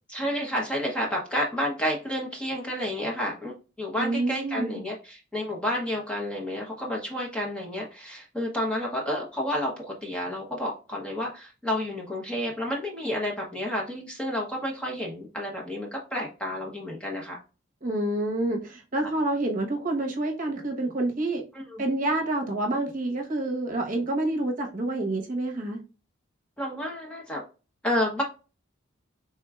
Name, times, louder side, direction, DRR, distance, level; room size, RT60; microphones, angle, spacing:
voice 1, 0.1-17.4 19.0-19.1 21.5-21.8 26.6-27.4 27.8-28.2, left 1 dB, 5° left, -1 dB, 0.8 m, -30 dB
voice 2, 4.0-4.8 17.8-21.4 21.8-25.8, right 2 dB, 40° right, 1 dB, 0.9 m, -28 dB
4.4 x 3.5 x 2.3 m, 0.33 s
head